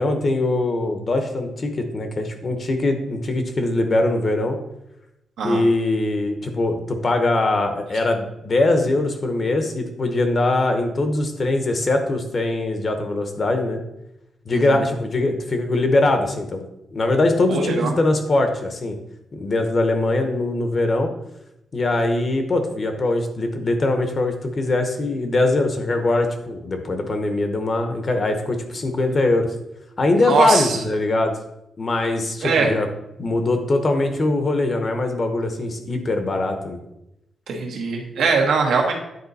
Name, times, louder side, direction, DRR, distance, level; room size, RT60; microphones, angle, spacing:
voice 1, 0.0-4.6 5.4-13.8 14.5-16.6 16.9-19.0 19.3-21.1 21.7-29.5 30.0-31.3 31.8-32.9 33.2-36.8, left 2 dB, 35° left, 6 dB, 0.9 m, -22 dB
voice 2, 14.5-14.8 17.5-17.9 30.2-30.8 32.4-32.7 37.5-38.9, right 4 dB, 85° right, 1 dB, 1.3 m, -21 dB
9.6 x 3.8 x 4.1 m, 0.87 s
wide cardioid pair, 135°, 0 cm